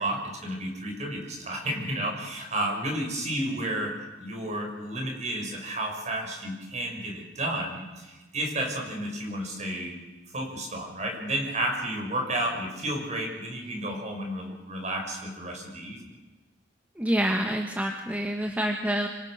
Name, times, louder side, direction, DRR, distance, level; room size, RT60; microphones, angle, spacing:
voice 1, 0.0-3.9 4.2-10.0 10.3-16.0, right 1 dB, 40° right, 2 dB, 6.9 m, -32 dB
voice 2, 17.0-19.1, equal, 10° right, 2 dB, 1.7 m, -27 dB
26.5 x 25.0 x 6.7 m, 1.2 s
head